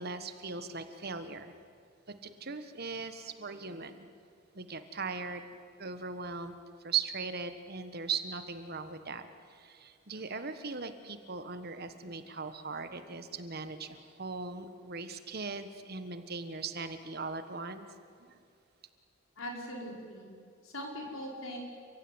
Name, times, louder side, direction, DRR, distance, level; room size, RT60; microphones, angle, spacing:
voice 1, 0.0-1.5 2.2-4.1 4.5-6.6 6.8-18.4, right 5 dB, 50° right, 10 dB, 1.5 m, -39 dB
voice 2, 19.4-20.4 20.6-21.6, equal, 80° left, 1 dB, 5.5 m, -41 dB
29.5 x 16.0 x 9.7 m, 2.2 s
head